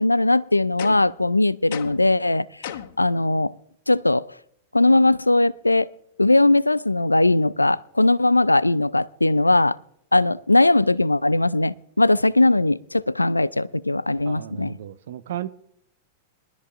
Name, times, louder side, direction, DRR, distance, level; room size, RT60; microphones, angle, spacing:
voice 1, 0.0-3.5 3.9-4.3 4.7-5.9 6.2-9.8 10.1-14.8, left 2 dB, 85° left, 0.4 m, -19 dB
sound 1, 0.8-1.2 1.7-2.1 2.6-3.1, left 10 dB, 55° left, 0.9 m, -35 dB
voice 2, 14.3-15.5, right 12 dB, 60° right, 0.8 m, -34 dB
22.5 x 13.0 x 2.5 m
figure-of-eight pair, 95°, 0 cm